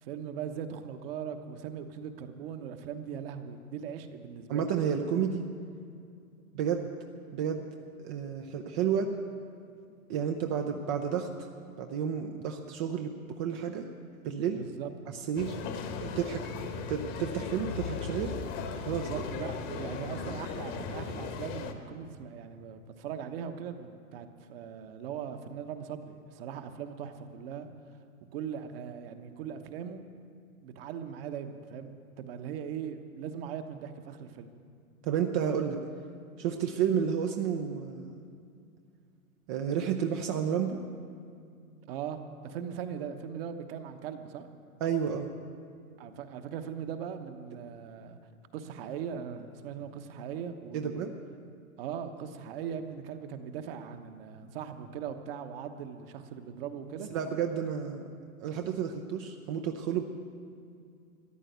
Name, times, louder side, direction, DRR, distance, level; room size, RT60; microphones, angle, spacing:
voice 1, 0.0-4.7 14.6-14.9 18.9-27.7 28.3-30.0 30.6-34.5 41.9-44.5 46.0-48.2 48.5-51.0 51.8-57.1, right 8 dB, 40° right, 8 dB, 1.1 m, -40 dB
voice 2, 4.5-5.5 6.5-6.9 7.3-7.6 8.0-9.1 10.1-11.3 11.8-13.9 14.2-14.6 15.1-15.6 16.0-18.3 18.8-19.1 35.0-35.8 36.4-38.1 39.5-40.8 44.8-45.3 50.7-51.1 57.1-58.0 58.4-60.0, right 8 dB, 20° right, 4 dB, 0.5 m, -31 dB
sound 1, 15.4-21.7, left 5 dB, 30° left, 1.1 m, -37 dB
14.0 x 10.0 x 8.0 m, 2.3 s
hypercardioid pair, 125°, 43 cm